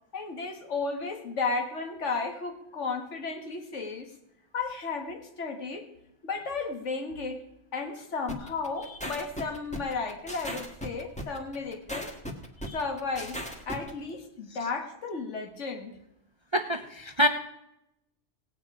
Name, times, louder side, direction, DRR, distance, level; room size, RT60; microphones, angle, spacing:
voice 1, 0.1-4.1 4.5-5.9 6.2-7.4 7.7-12.1 12.7-16.0, left 4 dB, 75° left, 5 dB, 1.8 m, -34 dB
sound 1, 8.3-13.9, equal, 5° left, 1.4 m, -37 dB
voice 2, 16.5-17.3, equal, 45° right, 7 dB, 0.4 m, -26 dB
17.5 x 9.0 x 4.8 m, 0.85 s
omnidirectional pair, 1.2 m